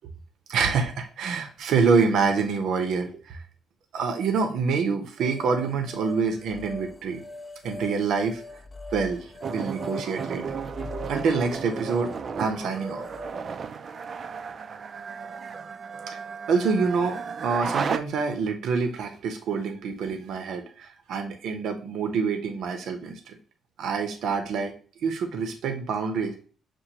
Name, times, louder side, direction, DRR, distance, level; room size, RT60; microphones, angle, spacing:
voice 1, 0.5-3.4 3.9-7.2 7.6-8.4 8.9-10.6 11.1-12.1 12.4-13.0 16.5-23.4 23.8-24.7 25.0-26.3, right 5 dB, 75° right, 6 dB, 0.7 m, -26 dB
sound 1, 5.2-13.4, left 2 dB, 20° left, 0.4 m, -41 dB
sound 2, 9.4-18.0, right 6 dB, 50° right, 0.3 m, -34 dB
6.0 x 2.4 x 2.8 m, 0.40 s
cardioid pair, 90°, 0 cm